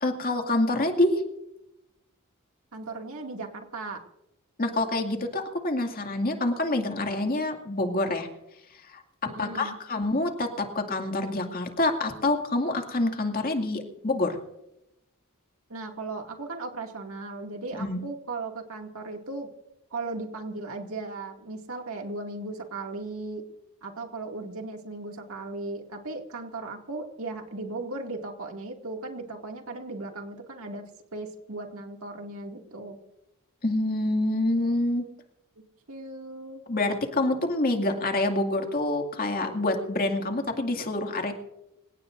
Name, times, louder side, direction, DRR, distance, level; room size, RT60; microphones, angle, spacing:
voice 1, 0.0-1.2 4.6-8.3 8.9-9.0 9.4-14.4 17.8-18.0 33.6-35.0 36.7-41.3, left 2 dB, 40° left, 4 dB, 2.2 m, -26 dB
voice 2, 2.7-4.0 9.2-9.8 15.7-19.5 19.9-23.4 23.8-33.0 35.9-36.6, right 3 dB, 70° right, 3 dB, 2.3 m, -37 dB
26.5 x 17.5 x 2.6 m, 0.86 s
head